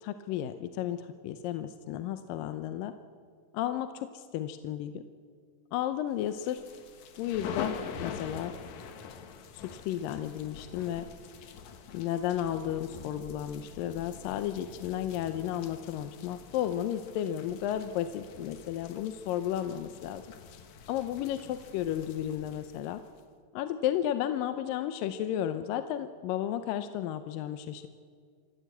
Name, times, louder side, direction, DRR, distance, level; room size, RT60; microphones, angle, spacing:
voice 1, 0.0-2.9 3.5-5.0 5.7-6.6 7.2-8.5 9.5-11.1 11.9-20.2 20.9-23.0 23.5-27.9, left 11 dB, 80° left, 9 dB, 2.3 m, -33 dB
sound 1, 6.3-23.2, left 6 dB, 65° left, 2.3 m, -45 dB
25.5 x 15.5 x 8.1 m, 2.1 s
omnidirectional pair, 4.1 m